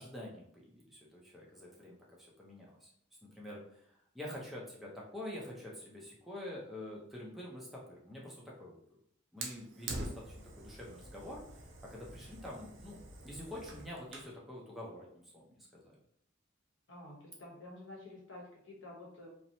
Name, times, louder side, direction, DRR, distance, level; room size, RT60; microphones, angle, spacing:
voice 1, 0.0-2.9 3.2-8.8 9.3-11.4 11.8-16.0, left 1 dB, ahead, -5 dB, 0.4 m, -47 dB
Fire, 9.4-14.4, right 2 dB, 65° right, 0.5 m, -46 dB
voice 2, 16.9-19.3, left 1 dB, 65° left, -2 dB, 0.9 m, -50 dB
2.8 x 2.0 x 2.6 m, 0.69 s
head